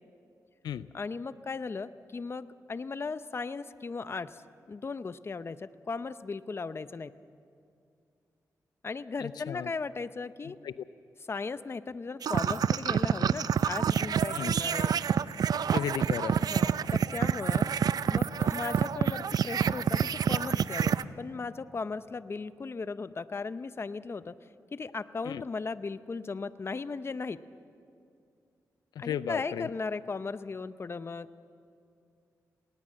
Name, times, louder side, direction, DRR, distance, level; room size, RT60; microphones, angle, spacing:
voice 1, 0.9-4.4 4.7-7.1 8.8-10.6 11.3-14.9 16.4-17.7 18.1-24.3 24.7-27.4 29.0-31.3, left 4 dB, 40° left, 14 dB, 0.7 m, -37 dB
voice 2, 9.2-9.7 10.6-10.7 14.3-14.6 15.7-16.4 25.3-25.4 29.0-29.7, left 9 dB, 90° left, 15 dB, 0.5 m, -34 dB
sound 1, 12.2-21.0, right 8 dB, 70° right, 0.5 m, -27 dB
19.0 x 19.0 x 7.6 m, 2.5 s
cardioid pair, 75°, 7 cm